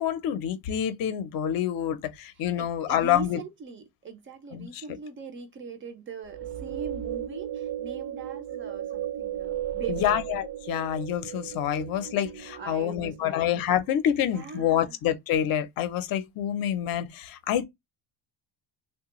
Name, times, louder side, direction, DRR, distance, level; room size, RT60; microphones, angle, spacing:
voice 1, 0.0-3.4 4.5-4.8 9.9-17.6, left 10 dB, 50° left, 0.6 m, -27 dB
voice 2, 2.6-10.2 11.7-11.8 12.1-12.2 12.6-13.5 14.2-15.0, right 5 dB, 30° right, 0.4 m, -41 dB
sound 1, 6.3-13.6, right 11 dB, 70° right, 0.6 m, -35 dB
3.1 x 2.2 x 2.9 m
cardioid pair, 170°, 45 cm